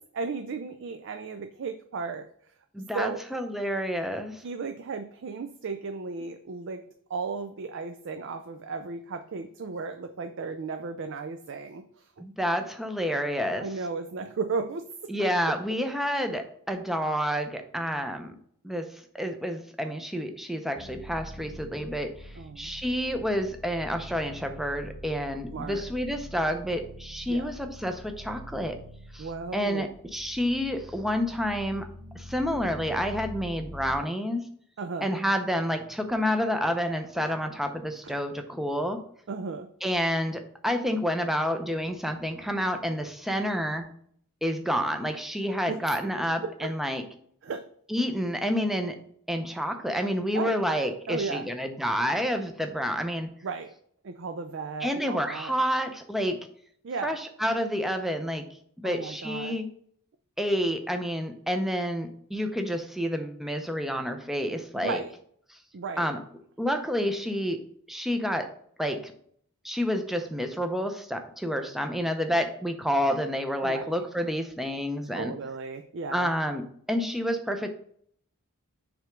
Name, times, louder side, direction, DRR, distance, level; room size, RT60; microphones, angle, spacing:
voice 1, 0.1-2.3 2.9-3.2 4.4-6.8 7.1-12.1 13.6-14.9 15.2-15.3 22.4-22.7 25.5-25.8 27.3-27.5 29.2-29.9 34.8-35.1 38.0-38.1 39.3-39.7 45.7-45.8 46.0-46.1 46.4-46.7 47.4-47.6 50.3-50.5 51.1-51.5 53.4-53.7 54.0-55.5 56.8-57.2 58.8-59.6 64.7-65.1 65.7-66.1 73.6-74.0 75.1-76.3, right 4 dB, 55° right, 7 dB, 0.4 m, -35 dB
voice 2, 2.7-4.4 12.2-13.7 15.1-18.4 18.6-28.8 29.1-29.3 29.5-31.9 32.1-34.5 35.0-39.0 39.8-43.9 44.4-47.0 47.9-49.0 49.3-53.3 54.8-56.4 57.0-58.5 58.8-59.7 60.4-65.0 66.0-66.2 66.6-68.5 68.8-69.1 69.6-75.3 76.1-77.7, equal, ahead, 5 dB, 0.5 m, -29 dB
sound 1, 20.8-34.0, equal, 40° right, 1.2 m, -44 dB
6.0 x 3.4 x 5.0 m, 0.62 s
head